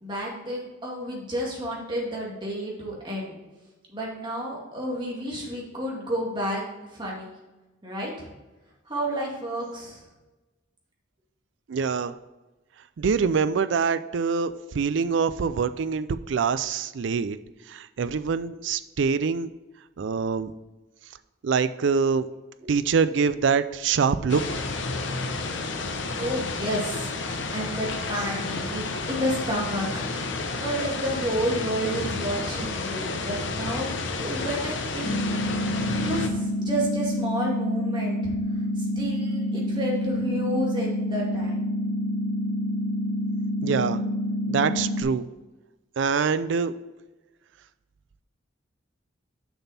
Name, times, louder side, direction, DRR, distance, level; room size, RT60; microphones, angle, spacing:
voice 1, 0.0-3.4 3.9-6.6 6.9-7.3 7.8-8.3 8.9-10.0 22.6-22.7 26.2-27.1 27.5-30.1 30.6-35.2 35.7-38.3 38.8-41.6, equal, 25° right, -3 dB, 2.1 m, -31 dB
voice 2, 11.7-12.1 13.0-17.4 17.7-19.5 20.0-20.5 21.4-22.3 22.7-24.6 43.6-44.0 44.5-45.2 46.0-46.7, right 5 dB, 65° right, 13 dB, 0.4 m, -24 dB
sound 1, 24.3-36.3, left 3 dB, 70° left, 0.9 m, -31 dB
sound 2, 35.0-45.0, left 1 dB, 45° left, 0.9 m, -28 dB
6.9 x 6.0 x 4.2 m, 1.1 s
head